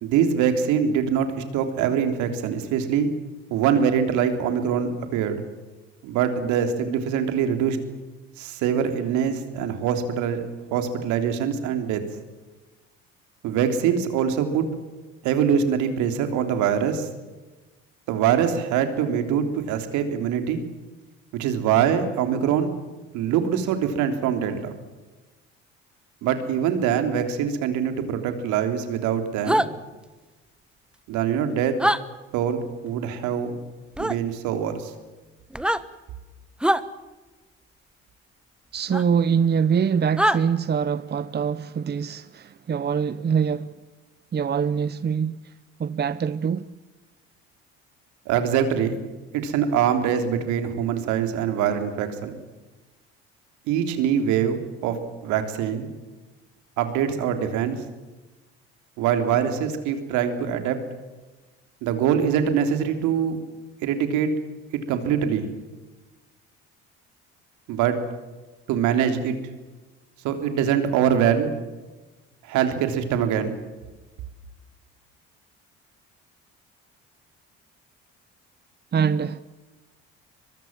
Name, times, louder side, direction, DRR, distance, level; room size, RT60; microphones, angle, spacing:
voice 1, 0.0-3.1 3.5-5.4 6.0-7.8 8.4-10.4 10.7-12.0 13.4-14.6 15.2-17.1 18.1-20.6 21.3-22.7 23.1-24.7 26.2-29.7 31.1-31.8 32.3-33.6 34.0-34.9 48.3-49.0 49.3-52.4 53.7-55.0 55.2-55.9 56.8-57.8 59.0-60.8 61.8-63.4 63.8-64.3 64.9-65.5 67.7-68.0 68.7-69.4 70.2-71.5 72.4-73.5, right 8 dB, 75° right, 3.5 m, -23 dB
sound 1, 29.5-29.7 31.8-32.0 34.0-34.2 35.5-35.8 36.6-36.8 38.9-39.0 40.2-40.4, right 1 dB, 5° right, 1.4 m, -21 dB
voice 2, 38.7-43.8 44.3-45.5 45.8-46.6 78.9-79.4, right 7 dB, 35° right, 0.9 m, -24 dB
24.0 x 22.5 x 7.6 m
hypercardioid pair, 65°, 30 cm